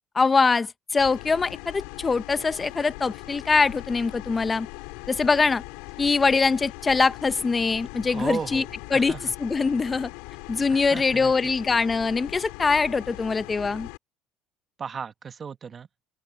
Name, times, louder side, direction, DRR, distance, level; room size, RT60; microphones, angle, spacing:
voice 1, 0.1-4.7 5.1-5.6 6.0-8.6 8.9-10.1 10.5-13.9, left 4 dB, 25° left, 0.8 m, -23 dB
sound 1, 1.0-14.0, left 27 dB, 85° left, 3.9 m, -40 dB
voice 2, 8.1-8.7 8.9-9.3 10.7-11.3 14.8-15.9, right 6 dB, 40° right, 1.6 m, -35 dB
open air
supercardioid pair, 85°, 0 cm